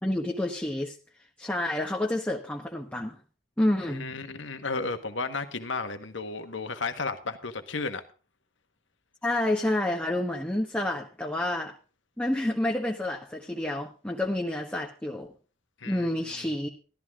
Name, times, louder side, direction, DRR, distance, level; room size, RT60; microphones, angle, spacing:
voice 1, 0.0-0.9 1.4-3.2 3.6-4.1 9.2-11.7 12.2-15.3 15.8-16.7, left 1 dB, 10° left, 0 dB, 1.2 m, -29 dB
voice 2, 3.9-8.0 15.8-16.1, left 4 dB, 65° left, 8 dB, 1.5 m, -33 dB
13.5 x 13.0 x 3.7 m, 0.36 s
head